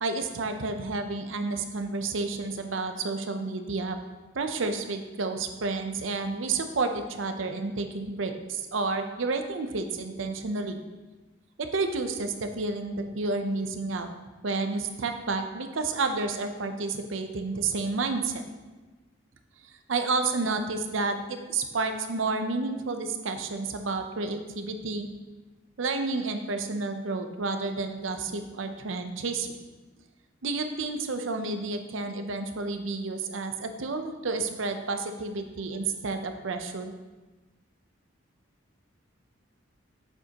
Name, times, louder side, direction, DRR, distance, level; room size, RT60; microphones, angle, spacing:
voice 1, 0.0-4.0 4.3-10.8 11.6-14.1 14.4-18.4 19.6-25.1 25.8-29.6 30.4-36.9, right 3 dB, 75° right, 7 dB, 0.6 m, -30 dB
7.9 x 6.7 x 2.9 m, 1.2 s
head